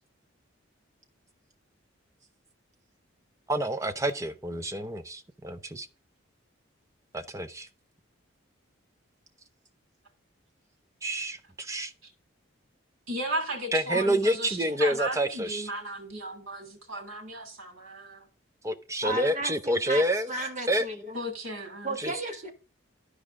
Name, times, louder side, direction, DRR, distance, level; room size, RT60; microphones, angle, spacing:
voice 1, 3.5-5.9 7.1-7.7 11.0-11.9 13.7-15.7 18.6-20.3 20.7-20.9 22.0-22.1, right 1 dB, 15° right, 0.6 m, -28 dB
voice 2, 13.1-18.3 21.1-22.0, right 1 dB, 80° right, 2.9 m, -35 dB
voice 3, 19.0-21.2 21.8-22.5, right 2 dB, 35° right, 1.8 m, -34 dB
12.5 x 4.9 x 3.6 m
head